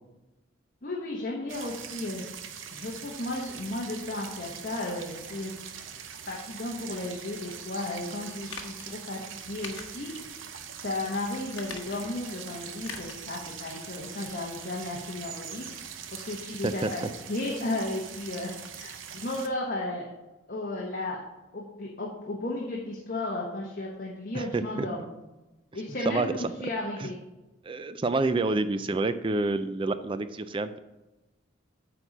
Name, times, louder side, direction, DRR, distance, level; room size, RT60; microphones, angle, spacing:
voice 1, 0.8-2.2 2.7-5.5 6.3-9.2 9.5-10.1 10.8-15.6 16.1-17.0 17.3-20.1 20.5-21.2 21.5-25.0 25.7-27.1, left 2 dB, 45° left, -2 dB, 1.1 m, -34 dB
sound 1, 1.5-19.5, right 8 dB, 75° right, 0.8 m, -42 dB
sound 2, 8.5-8.9 9.6-10.3 10.7-10.8 11.5-12.2 12.8-13.3 13.6-13.7, left 5 dB, 70° left, 1.2 m, -42 dB
voice 2, 24.3-24.9 26.1-26.3 27.0-27.1 27.6-30.8, right 3 dB, 25° right, 12 dB, 0.3 m, -28 dB
9.0 x 4.1 x 7.1 m, 1.0 s
head